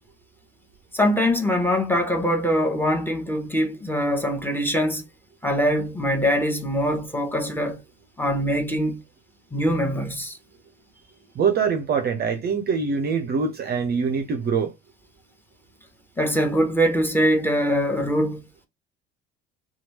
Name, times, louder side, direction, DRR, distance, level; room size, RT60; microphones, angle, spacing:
voice 1, 0.9-5.0 5.4-7.8 8.2-9.0 9.5-10.4 16.2-18.4, equal, 5° left, 0.9 m, -23 dB
voice 2, 11.4-14.7, right 5 dB, 30° right, 0.6 m, -24 dB
2.9 x 2.3 x 2.9 m
figure-of-eight pair, 65°, 30 cm